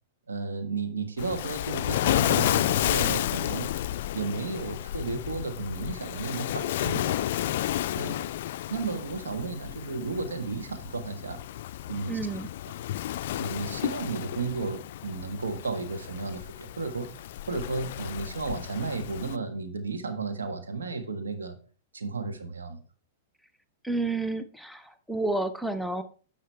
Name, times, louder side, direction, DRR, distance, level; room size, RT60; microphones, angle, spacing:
voice 1, 0.3-3.8 4.1-7.2 7.9-8.3 8.7-11.4 11.9-12.2 13.4-17.1 17.5-21.6 21.9-22.8, right 4 dB, 85° right, 1.4 m, -33 dB
Waves surf, 1.2-19.4, left 13 dB, 60° left, 0.3 m, -31 dB
voice 2, 12.1-12.5 23.8-26.0, right 2 dB, ahead, 0.7 m, -30 dB
10.0 x 6.1 x 3.3 m
hypercardioid pair, 110°, 0 cm